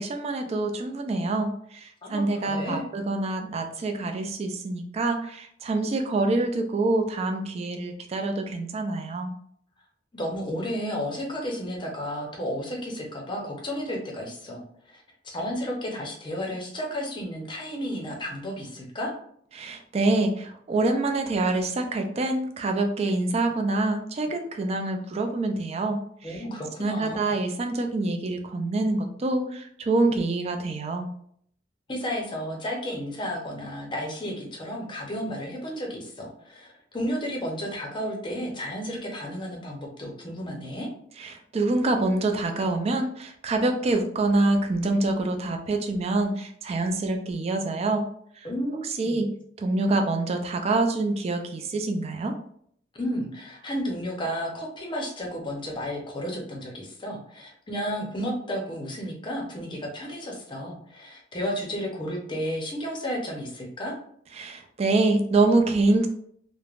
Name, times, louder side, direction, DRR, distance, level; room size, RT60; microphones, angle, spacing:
voice 1, 0.0-9.3 19.5-26.4 26.8-31.1 41.2-48.1 48.4-48.5 49.0-49.3 49.6-52.3 64.3-66.1, right 2 dB, 35° right, 5 dB, 0.3 m, -26 dB
voice 2, 2.0-2.9 10.1-19.1 26.2-27.4 31.9-40.9 48.4-49.2 52.9-64.0, equal, 25° left, 0 dB, 0.6 m, -32 dB
3.2 x 2.0 x 2.4 m, 0.65 s
head